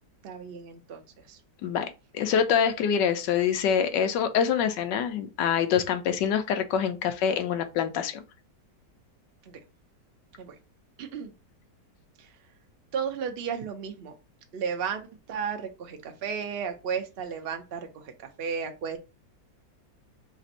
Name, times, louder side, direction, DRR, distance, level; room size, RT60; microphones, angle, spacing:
voice 1, 0.2-1.0 1.3-1.4 9.5-9.6 10.4-10.5 11.0-11.3 12.9-14.1 14.5-15.0 15.3-18.1 18.4-19.0, right 6 dB, 60° right, 0.6 m, -33 dB
voice 2, 2.1-8.2, left 8 dB, 85° left, 1.3 m, -25 dB
3.4 x 2.5 x 4.1 m
omnidirectional pair, 1.8 m